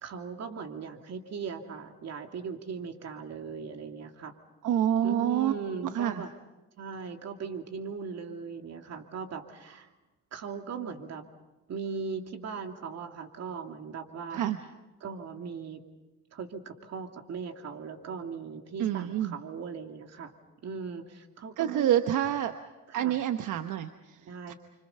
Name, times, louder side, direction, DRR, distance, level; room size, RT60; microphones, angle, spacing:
voice 1, 0.0-4.4 5.0-6.3 6.8-9.9 10.3-11.2 11.7-14.5 15.0-15.8 16.3-20.3 20.6-22.0 22.9-23.2 24.3-24.6, right 5 dB, 60° right, 4 dB, 2.8 m, -39 dB
voice 2, 4.6-5.5 5.8-6.2 14.3-14.6 18.8-19.3 21.6-22.5 22.9-24.2 24.5-24.6, right 11 dB, 80° right, 8 dB, 1.1 m, -27 dB
29.5 x 26.0 x 5.6 m, 1.1 s
cardioid pair, 90°, 30 cm